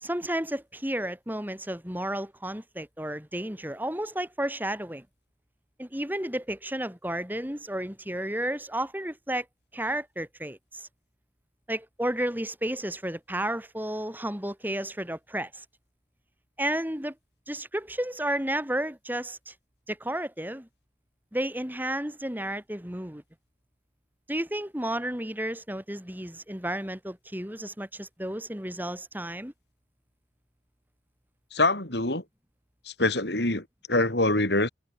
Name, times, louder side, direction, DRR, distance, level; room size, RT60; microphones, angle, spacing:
voice 1, 0.0-5.1 5.8-9.5 9.7-10.9 11.7-15.7 16.6-17.1 17.5-19.5 19.9-20.7 21.3-23.2 24.3-29.5, right 1 dB, 10° right, 3.6 m, -32 dB
voice 2, 31.5-32.2 33.0-34.7, left 2 dB, 65° left, 5.1 m, -24 dB
head